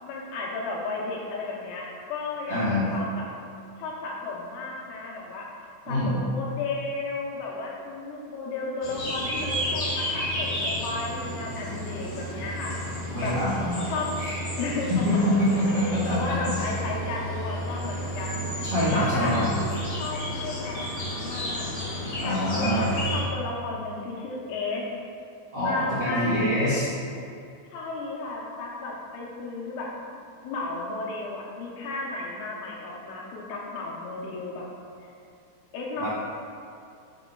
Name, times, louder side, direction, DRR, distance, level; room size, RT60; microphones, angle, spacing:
voice 1, 0.0-3.3 3.8-5.5 5.9-13.4 13.9-14.1 14.6-15.6 15.8-19.4 20.0-24.8 25.6-27.0 27.7-29.9 30.4-34.6 35.7-36.1, left 3 dB, 90° left, -3 dB, 2.9 m, -34 dB
voice 2, 2.5-2.9 5.8-6.2 13.1-14.4 14.9-16.5 18.7-19.4 22.2-22.9 25.5-26.9 36.0-36.1, left 1 dB, 85° right, -12 dB, 1.0 m, -25 dB
sound 1, 8.8-23.2, equal, 65° left, 1.1 m, -32 dB
7.5 x 6.1 x 2.3 m, 2.5 s
omnidirectional pair, 4.4 m